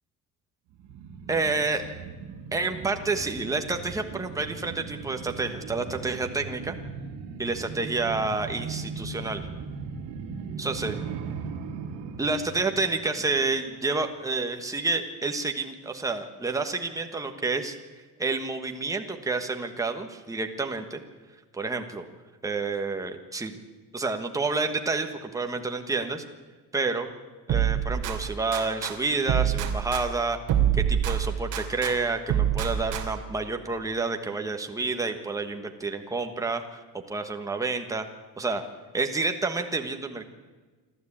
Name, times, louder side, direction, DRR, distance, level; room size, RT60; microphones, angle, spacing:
sound 1, 0.7-13.9 14.3-14.4, right 5 dB, 90° right, 2.2 m, -38 dB
voice 1, 1.3-1.8 2.5-6.7 7.4-9.5 10.6-11.0 12.2-17.7 18.2-21.0 21.5-22.0 22.4-23.5 23.9-26.2 26.7-27.1 27.5-30.4 30.7-36.8 37.1-38.1 38.4-38.6 38.9-40.2, right 3 dB, 10° right, 5 dB, 1.3 m, -29 dB
sound 2, 27.5-28.9 29.3-31.9 32.3-33.3, right 10 dB, 50° right, 3.0 m, -26 dB
28.0 x 12.5 x 8.7 m, 1.3 s
cardioid pair, 175°, 40 cm